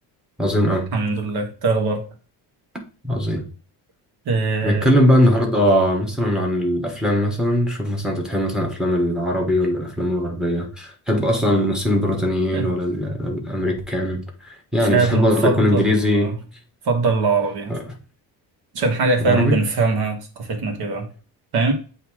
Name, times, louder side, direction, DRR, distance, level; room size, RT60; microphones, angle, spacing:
voice 1, 0.4-0.9 3.0-3.5 4.6-16.3 17.7-17.8 19.3-19.6, equal, ahead, 1.2 m, -20 dB
voice 2, 0.9-2.1 4.2-4.9 12.5-12.7 14.8-16.4 16.8-17.8 18.7-21.1 21.5-21.7, right 3 dB, 60° right, 1.5 m, -21 dB
7.9 x 2.8 x 4.9 m
cardioid pair, 170°, 41 cm